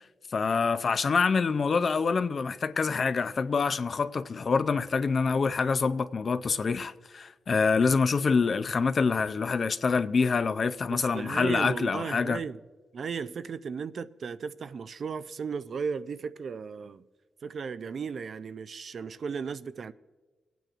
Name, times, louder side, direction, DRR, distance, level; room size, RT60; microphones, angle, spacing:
voice 1, 0.3-12.4, left 5 dB, 45° left, 0.4 m, -26 dB
voice 2, 10.9-12.6 12.9-17.1 17.4-19.9, right 5 dB, 55° right, 0.4 m, -35 dB
27.5 x 9.2 x 2.5 m
wide cardioid pair, 120°, 0 cm